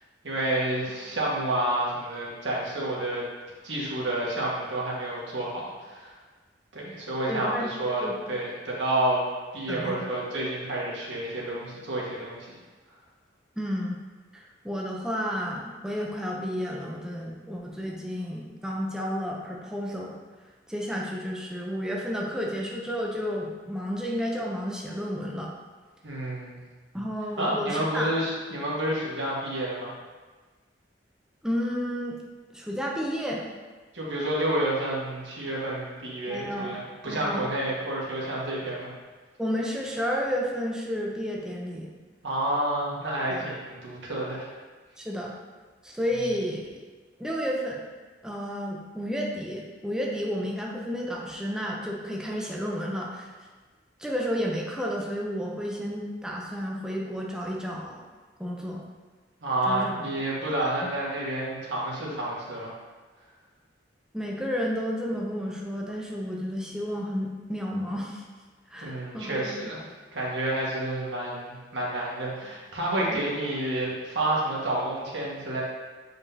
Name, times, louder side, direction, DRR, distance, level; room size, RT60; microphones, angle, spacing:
voice 1, 0.2-3.2 3.6-6.1 6.7-9.2 9.5-12.5 26.0-26.6 27.4-29.9 33.9-38.9 42.2-44.5 59.4-62.7 68.8-69.8 70.1-75.6, right 1 dB, 85° right, -5 dB, 1.7 m, -29 dB
voice 2, 7.3-7.7 8.0-8.2 9.7-10.1 13.6-14.0 14.3-20.1 20.7-25.5 26.9-28.1 31.4-32.2 32.5-33.4 36.3-36.8 37.1-37.5 39.4-41.9 43.2-43.5 45.0-45.3 45.8-46.8 47.2-47.8 48.2-53.3 54.0-58.0 58.4-58.8 59.7-59.9 60.6-60.7 64.1-68.2 68.7-69.5 73.1-73.2, equal, 5° right, -2 dB, 0.6 m, -31 dB
7.5 x 5.0 x 2.8 m, 1.4 s
head